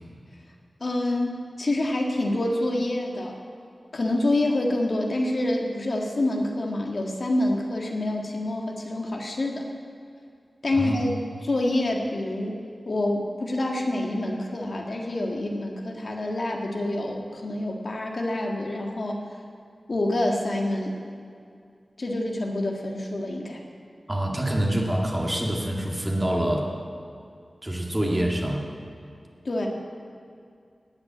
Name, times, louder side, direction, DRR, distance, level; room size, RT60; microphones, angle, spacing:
voice 1, 0.8-3.4 3.9-9.7 10.6-11.1 11.4-19.2 19.9-20.9 22.0-23.6 29.4-29.7, left 1 dB, 60° left, 0 dB, 1.8 m, -27 dB
voice 2, 24.1-26.7 27.6-28.7, right 1 dB, 20° right, -1 dB, 2.2 m, -26 dB
18.0 x 6.0 x 8.9 m, 2.4 s
wide cardioid pair, 75°, 0 cm